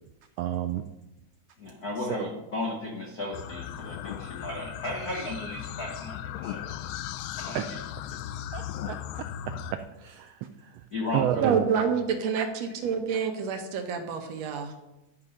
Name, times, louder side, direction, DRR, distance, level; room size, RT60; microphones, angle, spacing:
voice 1, 0.4-0.8 7.5-7.6 8.5-9.3 10.0-10.4 11.1-11.6, right 11 dB, 90° right, 9 dB, 1.4 m, -29 dB
voice 2, 1.6-6.7 7.3-8.5 10.9-11.5, left 2 dB, 65° left, 0 dB, 0.9 m, -35 dB
sound 1, 3.3-9.7, left 11 dB, 90° left, 1.4 m, -37 dB
voice 3, 11.4-14.7, right 6 dB, 70° right, 6 dB, 2.0 m, -27 dB
12.0 x 5.5 x 5.3 m, 0.95 s
omnidirectional pair, 3.4 m